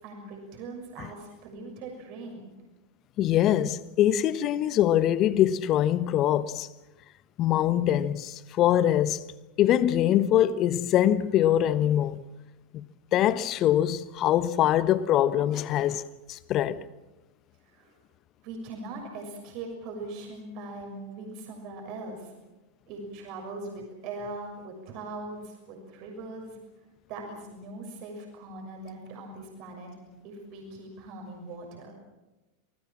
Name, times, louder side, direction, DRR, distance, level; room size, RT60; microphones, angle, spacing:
voice 1, 0.0-2.5 17.7-18.0 18.4-22.3 22.9-26.6 27.1-29.9 30.2-31.9, right 2 dB, 50° right, 6.5 m, -40 dB
voice 2, 3.2-6.7 7.4-9.2 9.6-12.2 12.7-12.8 13.1-16.8, left 11 dB, 40° left, 1.1 m, -23 dB
28.0 x 19.5 x 7.5 m
figure-of-eight pair, 90°, 0 cm